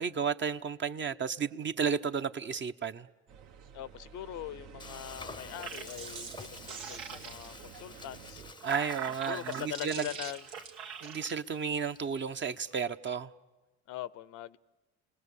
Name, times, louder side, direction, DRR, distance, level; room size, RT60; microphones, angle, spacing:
voice 1, 0.0-3.1 8.6-10.1 11.0-13.3, right 6 dB, 35° right, 0.9 m, -33 dB
sound 1, 3.3-8.5, right 7 dB, 65° right, 1.5 m, -51 dB
voice 2, 3.7-8.4 9.3-10.4 13.9-14.6, left 12 dB, 60° left, 0.8 m, -42 dB
Frying (food), 4.8-12.8, left 3 dB, 15° left, 0.8 m, -51 dB
sound 2, 5.4-7.7 8.3-11.3, right 7 dB, 85° right, 2.0 m, -42 dB
29.5 x 20.0 x 8.4 m
hypercardioid pair, 70°, 33 cm